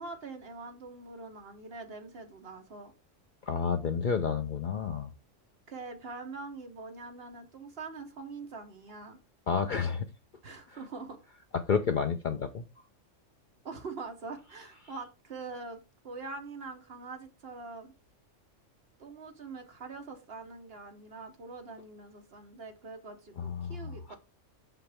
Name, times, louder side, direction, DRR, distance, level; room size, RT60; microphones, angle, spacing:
voice 1, 0.0-2.9 5.7-9.2 10.4-11.2 13.6-15.8 16.0-17.9 19.0-24.2, right 3 dB, 55° right, 1.3 m, -43 dB
voice 2, 3.4-5.1 9.5-10.1 11.5-12.6 23.4-24.1, left 6 dB, 50° left, 0.6 m, -30 dB
6.9 x 5.7 x 3.4 m
omnidirectional pair, 1.3 m